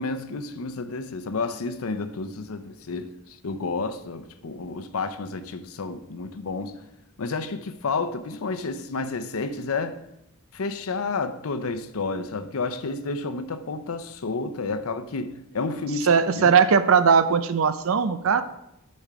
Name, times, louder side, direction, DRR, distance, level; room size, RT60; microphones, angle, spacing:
voice 1, 0.0-6.8 7.2-10.0 10.5-16.6, left 3 dB, 75° left, 0.6 m, -30 dB
voice 2, 16.0-18.4, right 6 dB, 75° right, 0.5 m, -19 dB
10.0 x 4.3 x 5.0 m
head